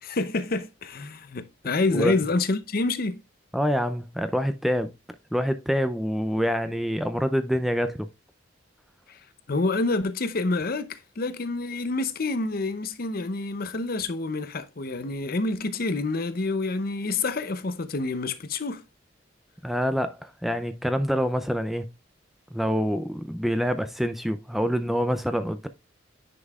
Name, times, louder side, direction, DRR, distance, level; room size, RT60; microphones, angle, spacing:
voice 1, 0.0-3.2 9.1-9.2 9.5-18.8, left 3 dB, 50° left, 0.7 m, -28 dB
voice 2, 3.5-4.9 5.3-8.1 19.6-21.9 22.5-25.7, equal, ahead, 0.4 m, -26 dB
9.8 x 5.3 x 2.4 m
head